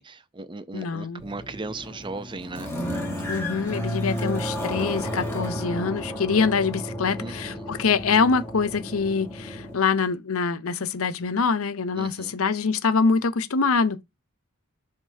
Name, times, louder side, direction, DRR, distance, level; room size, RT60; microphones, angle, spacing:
voice 1, 0.0-2.7 7.1-7.7 11.9-12.3, right 3 dB, 20° right, 0.6 m, -37 dB
voice 2, 0.7-1.2 3.3-14.0, left 5 dB, 80° left, 0.7 m, -24 dB
sound 1, 1.2-9.7, equal, 10° left, 1.8 m, -32 dB
10.5 x 3.7 x 2.7 m
head